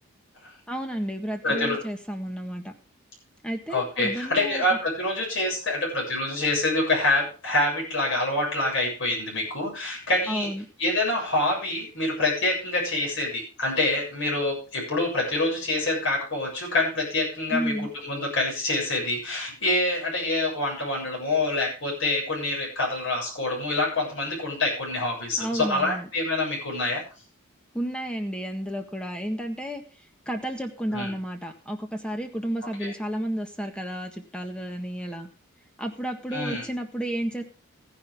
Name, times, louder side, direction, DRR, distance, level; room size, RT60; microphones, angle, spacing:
voice 1, 0.7-2.7 3.4-4.6 10.3-10.7 17.5-17.9 25.4-26.1 27.7-29.8 30.2-35.3 35.8-37.4, equal, 5° left, 4 dB, 1.5 m, -31 dB
voice 2, 1.4-1.8 3.7-10.5 10.8-27.0 30.9-31.1 32.8-32.9 36.3-36.6, left 2 dB, 60° left, -1 dB, 7.3 m, -26 dB
14.5 x 10.5 x 3.7 m, 0.35 s
head